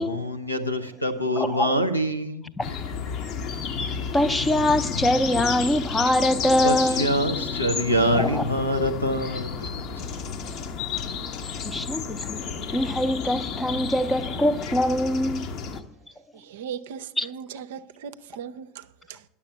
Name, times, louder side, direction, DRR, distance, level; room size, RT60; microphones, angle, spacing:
voice 1, 0.0-2.6 6.6-10.0, equal, 90° left, 0.8 m, -25 dB
voice 2, 1.4-1.7 2.6-2.7 4.1-7.0 8.2-8.4 11.6-12.4 12.7-15.5 17.2-17.3, left 1 dB, 15° left, 0.6 m, -23 dB
sound 1, 2.6-15.8, left 6 dB, 45° left, 0.9 m, -31 dB
voice 3, 16.3-19.2, right 7 dB, 65° right, 0.5 m, -38 dB
10.5 x 7.0 x 6.9 m
figure-of-eight pair, 75°, 0 cm